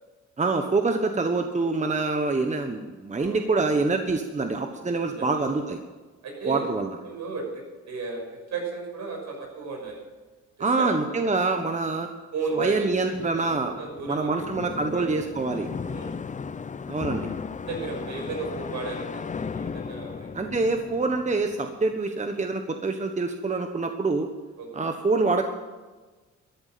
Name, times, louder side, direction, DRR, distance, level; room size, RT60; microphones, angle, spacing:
voice 1, 0.4-5.8 6.4-6.9 10.6-12.1 12.5-13.7 14.1-15.7 16.9-17.3 20.3-24.3 24.7-25.4, right 3 dB, 25° right, 5 dB, 1.3 m, -25 dB
voice 2, 6.2-6.7 7.0-10.0 10.6-10.9 12.3-14.3 14.9-15.1 15.9-16.1 17.7-20.6 24.6-24.9, right 4 dB, 65° right, 1 dB, 6.3 m, -34 dB
sound 1, 13.1-22.0, left 5 dB, 25° left, 0.6 m, -36 dB
14.0 x 11.0 x 7.6 m, 1.3 s
cardioid pair, 90°, 30 cm